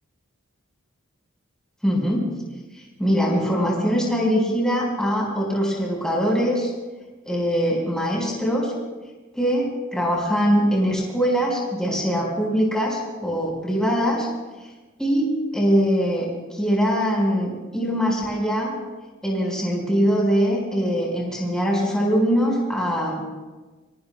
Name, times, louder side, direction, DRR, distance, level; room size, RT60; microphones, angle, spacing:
voice 1, 1.8-2.3 3.0-6.7 7.3-8.7 9.3-14.3 15.0-15.3 15.5-18.7 19.2-23.2, equal, 5° left, -3 dB, 4.7 m, -22 dB
23.5 x 23.0 x 2.3 m, 1.2 s
head